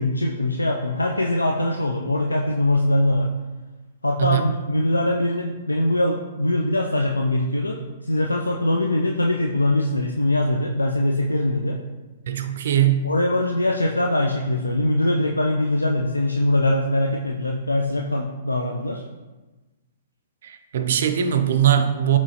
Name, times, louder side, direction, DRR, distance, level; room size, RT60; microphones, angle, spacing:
voice 1, 0.0-3.3 4.0-11.8 13.0-19.0, left 1 dB, 85° left, 1 dB, 0.3 m, -22 dB
voice 2, 12.3-13.0 20.4-22.2, right 10 dB, 60° right, 7 dB, 0.4 m, -20 dB
6.0 x 3.0 x 2.8 m, 1.2 s
figure-of-eight pair, 115°, 0 cm